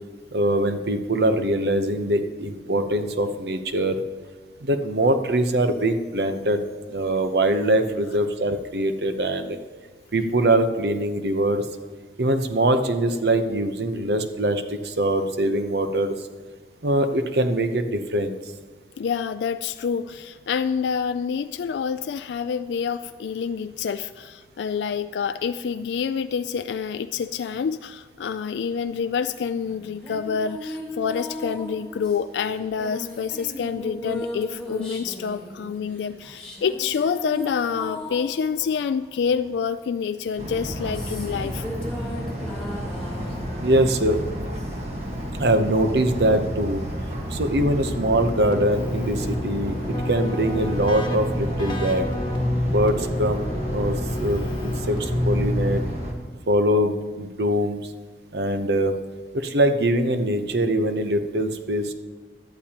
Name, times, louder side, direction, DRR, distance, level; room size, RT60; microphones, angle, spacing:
voice 1, 0.3-4.0 4.6-6.6 6.9-9.6 10.1-11.6 12.2-16.1 16.8-18.4 43.6-44.2 45.4-46.8 47.3-49.8 50.1-52.1 52.7-53.5 53.7-55.8 56.5-57.8 58.3-58.9 59.3-61.9, right 1 dB, 70° right, 8 dB, 0.8 m, -23 dB
voice 2, 19.0-41.6, left 6 dB, 85° left, 11 dB, 0.3 m, -27 dB
sound 1, 29.7-39.6 40.4-45.1, left 1 dB, 5° left, 2.3 m, -37 dB
sound 2, 40.4-56.1, equal, 35° right, 1.5 m, -31 dB
Keyboard (musical), 47.5-56.3, left 1 dB, 25° left, 1.4 m, -29 dB
17.0 x 12.0 x 2.9 m, 1.4 s
head